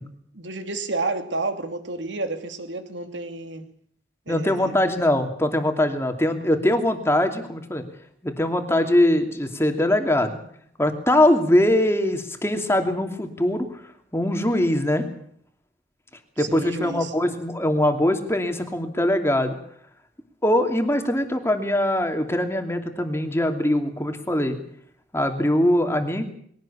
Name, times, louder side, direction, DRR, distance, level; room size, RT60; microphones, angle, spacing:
voice 1, 0.3-3.7 4.3-4.8 16.4-17.1, right 3 dB, 80° right, 7 dB, 2.7 m, -30 dB
voice 2, 4.3-7.8 8.2-10.4 10.8-13.7 14.1-15.1 16.4-19.6 20.4-24.6 25.1-26.3, left 1 dB, 15° left, 6 dB, 2.7 m, -22 dB
22.0 x 17.0 x 8.6 m, 0.64 s
head